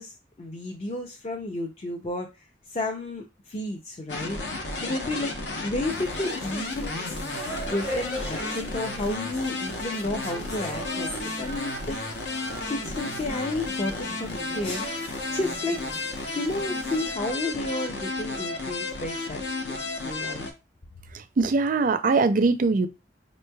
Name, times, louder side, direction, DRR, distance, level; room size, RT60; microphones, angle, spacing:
voice 1, 0.0-4.4 4.8-7.0 7.5-12.0 12.7-14.8 15.3-15.8 16.4-20.5, left 2 dB, 35° left, 1 dB, 0.5 m, -32 dB
sound 1, 4.1-20.5, left 2 dB, 70° left, 0.8 m, -33 dB
sound 2, 5.9-17.1, equal, 90° left, 1.3 m, -39 dB
voice 2, 21.4-22.9, right 3 dB, 50° right, 10 dB, 0.4 m, -21 dB
5.1 x 3.0 x 2.2 m, 0.25 s
head